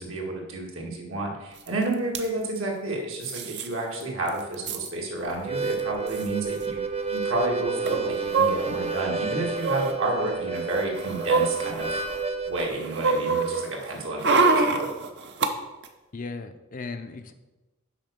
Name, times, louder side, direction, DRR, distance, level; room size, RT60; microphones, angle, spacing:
voice 1, 0.0-6.8 7.1-11.9 12.5-14.9, right 2 dB, 75° right, -1 dB, 2.0 m, -30 dB
sound 1, 1.7-1.8 1.9-2.2 3.2-3.7 4.0-4.1 4.3-4.9 5.7-5.8 6.1-6.3 7.8-9.0 9.6-9.9 10.6-12.2 12.6-15.5 15.8-15.9, right 3 dB, 55° right, 0.8 m, -25 dB
Harmonica, 5.3-12.7, right 4 dB, 30° right, 0.5 m, -30 dB
voice 2, 16.1-17.3, left 4 dB, 40° left, 8 dB, 0.6 m, -36 dB
7.3 x 5.1 x 6.7 m, 1.1 s
head